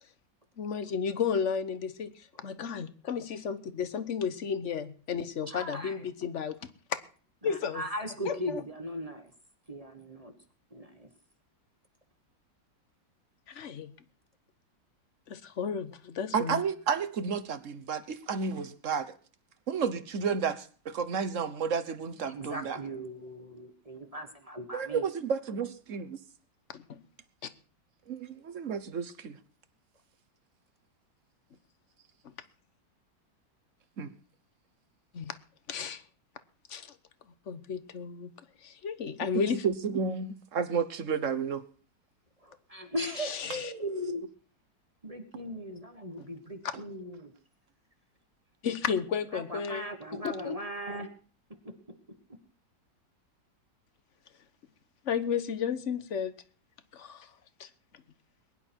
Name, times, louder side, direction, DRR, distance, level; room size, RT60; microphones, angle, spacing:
voice 1, 0.6-6.7 7.4-7.8 8.2-8.6 13.5-13.9 15.3-16.6 26.7-27.0 27.4-27.5 32.2-32.3 35.1-35.4 35.7-36.0 36.7-36.9 37.5-38.3 38.6-39.6 43.2-43.7 48.6-49.8 50.2-50.6 55.0-56.3 56.9-57.3 57.6-57.7, left 6 dB, 45° left, 12 dB, 1.2 m, -33 dB
voice 2, 5.5-6.1 7.4-9.3 9.7-10.3 10.7-11.1 22.2-25.1 42.4-44.2 45.0-47.3 49.3-51.1 51.6-52.0, equal, 20° right, 6 dB, 1.4 m, -38 dB
voice 3, 16.3-19.1 19.7-22.8 24.7-26.2 28.1-29.4 34.0-34.1 39.3-41.6, right 6 dB, 50° right, 12 dB, 1.2 m, -31 dB
21.5 x 11.0 x 4.5 m, 0.41 s
omnidirectional pair, 2.0 m